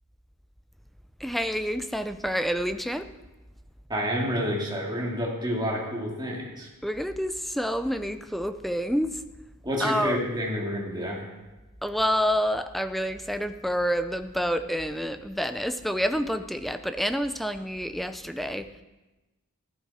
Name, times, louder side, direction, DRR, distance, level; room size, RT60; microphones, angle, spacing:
voice 1, 1.2-3.1 6.8-9.2 9.8-10.2 11.8-18.7, equal, ahead, 9 dB, 0.5 m, -28 dB
voice 2, 3.9-6.7 9.6-11.2, equal, 20° right, -3 dB, 2.4 m, -29 dB
14.5 x 9.5 x 4.3 m, 1.1 s
head